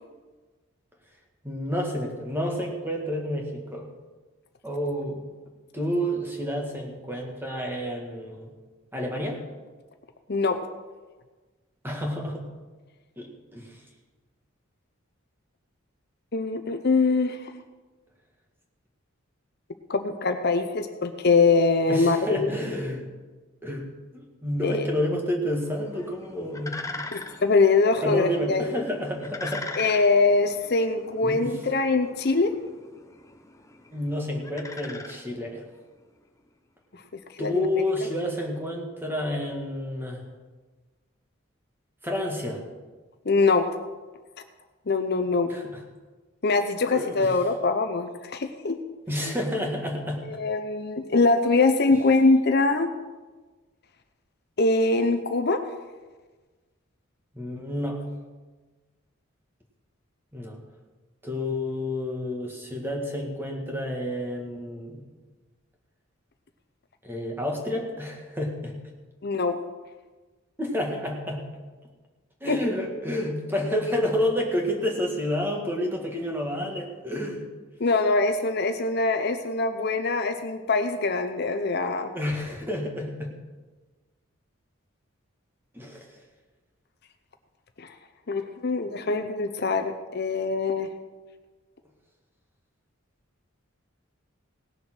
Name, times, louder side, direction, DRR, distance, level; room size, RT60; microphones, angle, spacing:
voice 1, 1.4-3.9 4.6-5.3 5.7-8.5 8.9-9.4 11.8-12.4 13.2-13.8 21.9-23.0 23.6-23.9 24.1-27.0 28.0-29.6 31.2-31.5 33.9-35.6 37.4-40.2 42.0-42.6 45.5-45.8 46.9-47.3 49.1-50.2 51.9-52.0 57.3-58.1 60.3-60.6 61.2-65.1 67.0-68.7 70.6-71.5 72.4-77.5 82.1-83.3 85.7-86.1, left 1 dB, 10° right, 0 dB, 1.9 m, -30 dB
voice 2, 16.3-17.5 19.9-22.5 24.6-24.8 27.1-28.8 29.8-32.5 37.3-37.9 43.3-43.7 44.9-45.5 46.4-48.8 49.3-49.4 50.3-52.9 54.6-55.6 69.2-69.6 72.5-72.6 77.8-82.1 87.8-87.9 88.3-90.9, left 3 dB, 50° left, 7 dB, 0.7 m, -23 dB
sound 1, 25.5-35.8, left 2 dB, 15° left, 0.8 m, -42 dB
18.0 x 6.8 x 6.2 m, 1.3 s
head